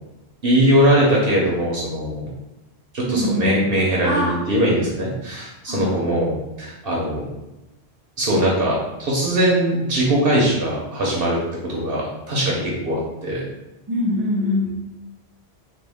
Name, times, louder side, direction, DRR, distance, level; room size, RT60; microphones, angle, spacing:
voice 1, 0.4-2.3 2.9-7.2 8.2-11.4 11.6-13.4, right 1 dB, 60° right, -3 dB, 0.9 m, -21 dB
voice 2, 3.1-3.7 4.0-4.4 5.7-5.9 13.9-14.7, left 1 dB, 20° right, -4 dB, 0.9 m, -23 dB
3.6 x 2.3 x 3.4 m, 0.99 s
omnidirectional pair, 1.1 m